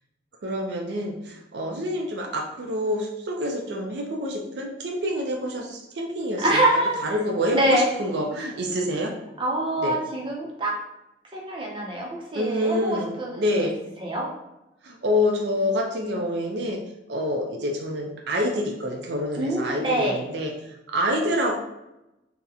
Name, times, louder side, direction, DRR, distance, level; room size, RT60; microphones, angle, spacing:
voice 1, 0.4-6.6 7.0-9.1 9.8-10.0 12.3-13.7 14.8-16.8 17.1-20.5 20.9-21.6, left 1 dB, 75° right, 1 dB, 0.5 m, -27 dB
voice 2, 6.1-7.0 7.5-7.9 9.4-10.7 11.3-13.7 14.0-14.3 19.4-20.1, right 1 dB, 30° right, -2 dB, 0.6 m, -25 dB
2.8 x 2.1 x 3.6 m, 0.91 s
head